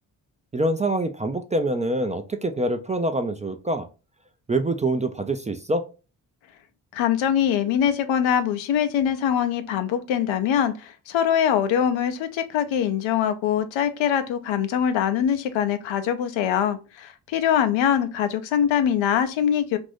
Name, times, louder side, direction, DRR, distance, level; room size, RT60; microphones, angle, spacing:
voice 1, 0.5-3.9 4.5-5.8, right 1 dB, 15° right, 0.3 m, -25 dB
voice 2, 6.9-19.8, left 9 dB, 75° left, 0.6 m, -23 dB
2.6 x 2.5 x 3.4 m
supercardioid pair, 40°, 46 cm